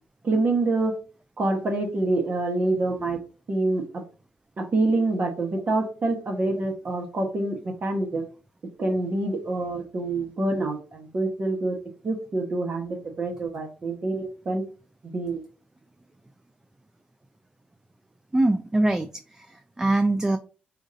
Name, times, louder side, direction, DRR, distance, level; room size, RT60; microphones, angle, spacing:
voice 1, 0.2-1.0 1.4-3.2 3.5-4.0 4.6-8.3 8.8-11.8 12.0-14.6 15.1-15.4, right 2 dB, 50° right, 2 dB, 1.3 m, -26 dB
voice 2, 18.3-20.4, right 2 dB, 15° right, 10 dB, 0.4 m, -23 dB
5.0 x 2.6 x 3.9 m, 0.36 s
cardioid pair, 70°, 4 cm